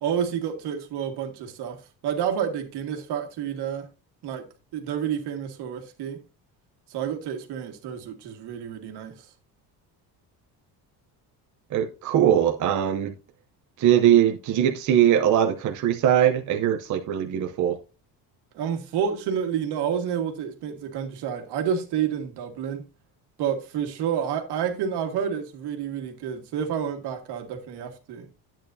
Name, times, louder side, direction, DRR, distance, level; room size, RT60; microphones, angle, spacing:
voice 1, 0.0-3.9 4.2-4.4 4.7-6.2 6.9-9.1 18.5-22.8 23.4-28.3, right 8 dB, 80° right, 1.8 m, -29 dB
voice 2, 11.7-13.1 13.8-17.8, right 10 dB, 50° right, 0.7 m, -21 dB
10.5 x 8.9 x 2.7 m
cardioid pair, 170°, 39 cm